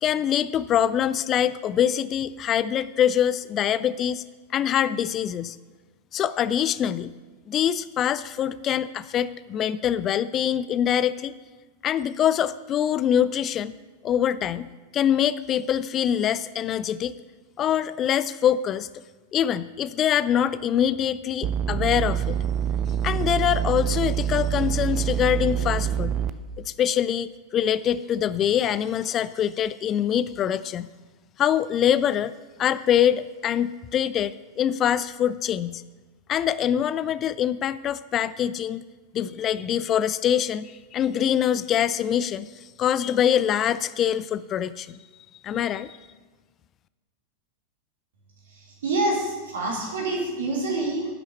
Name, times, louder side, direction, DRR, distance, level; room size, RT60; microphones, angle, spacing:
voice 1, 0.0-4.2 4.5-5.6 6.1-7.1 7.5-11.3 11.8-13.7 14.0-14.7 14.9-17.1 17.6-18.9 19.3-22.4 23.0-26.2 26.6-30.9 31.4-35.8 36.3-38.8 39.1-42.5 42.8-45.0 45.4-45.9, left 9 dB, 30° left, 16 dB, 0.3 m, -24 dB
sound 1, 21.4-26.3, right 9 dB, 35° right, 0.5 m, -26 dB
voice 2, 48.5-51.2, right 2 dB, 60° right, -2 dB, 2.3 m, -27 dB
10.0 x 6.3 x 7.1 m, 1.3 s
figure-of-eight pair, 90°, 0 cm